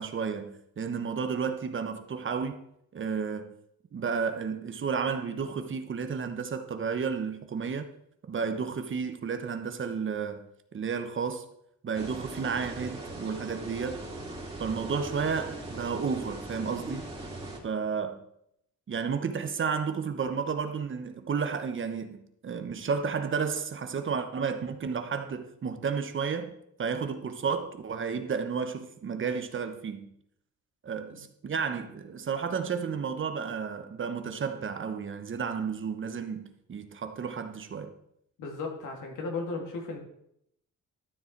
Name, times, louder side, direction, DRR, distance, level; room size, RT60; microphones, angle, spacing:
voice 1, 0.0-2.6 2.9-3.5 3.9-7.9 8.3-10.5 10.7-11.4 11.8-14.1 14.6-17.1 17.6-18.2 18.9-30.1 30.8-37.9, right 6 dB, 40° right, 1.1 m, -32 dB
sound 1, 11.9-17.6, right 2 dB, 20° right, 2.8 m, -40 dB
voice 2, 38.4-40.0, left 3 dB, 80° left, 2.8 m, -35 dB
12.5 x 7.0 x 4.6 m
cardioid pair, 90°, 30 cm